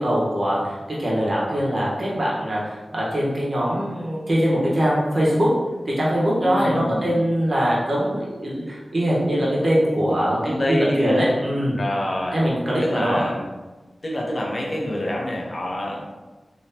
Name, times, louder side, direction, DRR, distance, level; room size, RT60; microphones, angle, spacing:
voice 1, 0.0-5.5 5.9-11.8 12.3-13.2, equal, 45° right, -6 dB, 1.3 m, -22 dB
voice 2, 6.4-7.2 10.4-11.4 11.7-12.4 12.8-13.4 14.0-16.1, left 1 dB, 50° left, -2 dB, 0.8 m, -26 dB
3.5 x 3.0 x 2.9 m, 1.2 s
cardioid pair, 50°, 0 cm